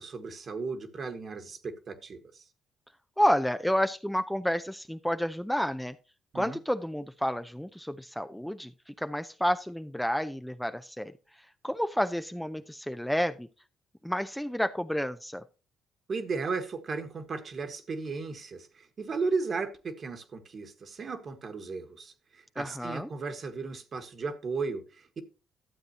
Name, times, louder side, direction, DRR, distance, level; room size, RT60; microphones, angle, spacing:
voice 1, 0.0-2.5 6.3-6.6 16.1-25.2, right 4 dB, 45° right, 9 dB, 1.5 m, -35 dB
voice 2, 3.2-6.0 6.3-11.1 11.6-13.5 14.0-15.4 22.6-23.1, equal, 5° left, 10 dB, 0.5 m, -30 dB
12.5 x 7.7 x 2.8 m, 0.32 s
cardioid pair, 90°, 0 cm